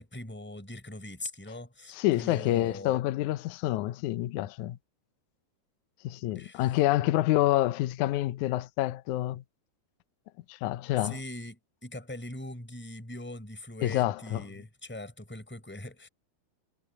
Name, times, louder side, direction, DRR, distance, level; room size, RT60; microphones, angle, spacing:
voice 1, 0.0-3.0 6.3-6.7 11.0-16.1, left 1 dB, 5° left, 5.9 m, -42 dB
voice 2, 1.9-4.8 6.0-9.4 10.5-11.2 13.8-14.5, left 15 dB, 75° left, 1.8 m, -27 dB
omnidirectional pair, 4.4 m